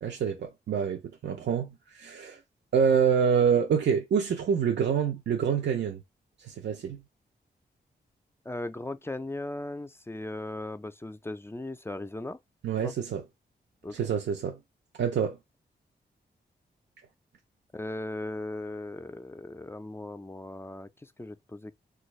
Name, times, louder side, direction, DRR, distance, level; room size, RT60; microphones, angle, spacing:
voice 1, 0.0-2.4 2.7-6.0 6.4-7.0 12.6-13.2 13.9-14.6 15.0-15.4, right 7 dB, 75° right, 0.5 m, -26 dB
voice 2, 8.5-12.4 12.8-12.9 13.8-14.0 17.7-21.7, left 2 dB, 15° left, 0.4 m, -38 dB
3.4 x 2.3 x 3.1 m
cardioid pair, 65°, 19 cm